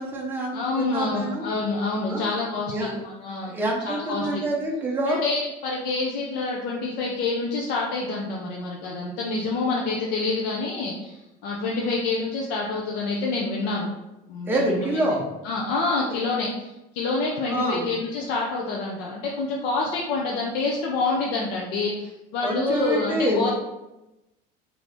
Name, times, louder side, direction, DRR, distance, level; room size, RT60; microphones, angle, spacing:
voice 1, 0.0-1.4 2.1-2.2 2.7-2.9 3.5-5.2 14.5-15.2 17.5-17.9 22.4-23.5, right 1 dB, 10° right, -2 dB, 0.7 m, -26 dB
voice 2, 0.5-3.5 3.8-4.4 5.1-13.9 14.3-15.0 15.4-23.5, left 3 dB, 60° left, -2 dB, 0.6 m, -27 dB
4.3 x 2.8 x 3.3 m, 0.97 s
cardioid pair, 165°, 19 cm